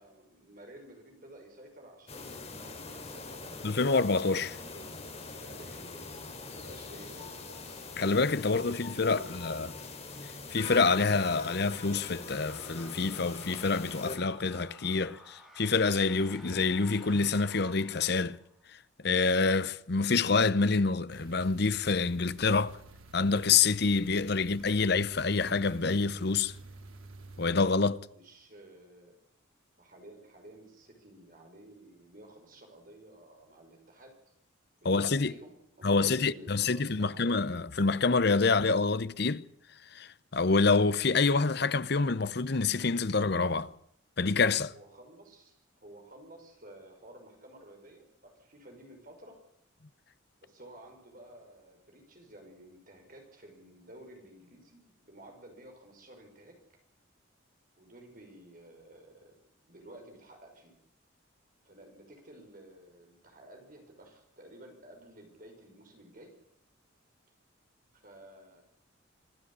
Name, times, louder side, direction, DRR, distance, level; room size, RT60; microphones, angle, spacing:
voice 1, 0.0-3.9 4.6-4.9 5.4-7.8 8.4-9.8 28.1-29.2 29.8-34.2 34.9-37.4 44.7-49.4 50.4-56.6 57.8-60.8 61.6-66.4 67.9-68.6, right 1 dB, 40° right, 5.9 m, -53 dB
sound 1, 2.1-14.2, left 3 dB, 30° left, 2.9 m, -43 dB
voice 2, 3.6-4.6 8.0-9.7 10.5-18.4 19.0-22.8 23.1-26.5 27.4-28.0 34.8-35.3 35.8-39.5 39.9-43.7 44.2-44.7, left 4 dB, 50° left, 0.8 m, -27 dB
sound 2, 12.2-18.6, equal, 5° right, 7.0 m, -54 dB
sound 3, 21.1-27.5, right 2 dB, 85° right, 3.2 m, -49 dB
25.5 x 12.5 x 9.9 m
head